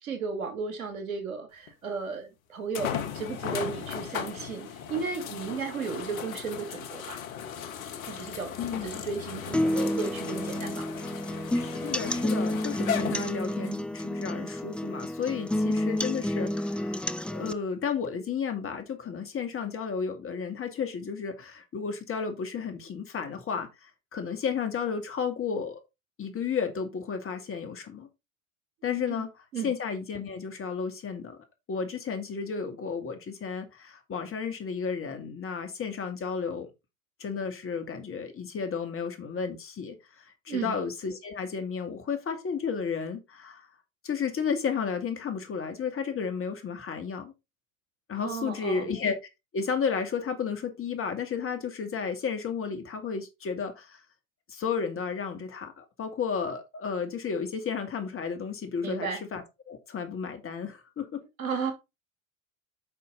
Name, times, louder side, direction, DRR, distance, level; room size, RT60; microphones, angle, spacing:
voice 1, 0.0-7.2 8.1-10.9 29.1-29.2 29.5-29.7 40.5-40.7 48.2-48.9 58.8-59.2 61.4-61.7, right 5 dB, 80° right, 2.6 m, -34 dB
sound 1, 1.7-1.8 2.7-13.8 14.5-14.6 18.0-18.1, left 8 dB, 75° left, 1.3 m, -37 dB
voice 2, 8.6-9.0 11.5-17.0 17.3-25.8 26.2-28.1 28.8-29.3 29.6-31.4 31.7-36.7 37.2-43.7 44.0-47.3 48.1-49.2 49.5-54.0 54.5-61.2, left 6 dB, 30° left, 2.5 m, -33 dB
sound 2, 9.5-17.5, left 1 dB, 5° left, 0.4 m, -30 dB
9.2 x 5.6 x 3.9 m
hypercardioid pair, 75°, 41 cm